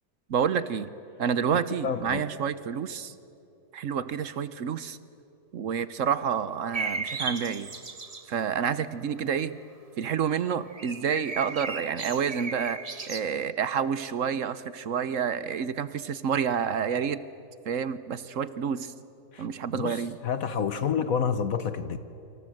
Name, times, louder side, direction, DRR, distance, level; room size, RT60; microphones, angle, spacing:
voice 1, 0.3-0.9 1.2-3.1 3.7-5.0 5.5-7.7 8.3-9.6 10.0-17.2 17.7-18.9 19.4-20.2, right 7 dB, 55° right, 14 dB, 1.1 m, -29 dB
voice 2, 1.8-2.3 19.3-19.5 19.7-22.0, left 7 dB, 60° left, 11 dB, 1.3 m, -29 dB
sound 1, 6.7-8.3 10.7-13.2, right 4 dB, 25° right, 1.1 m, -35 dB
29.0 x 26.0 x 7.8 m, 2.8 s
omnidirectional pair, 1.8 m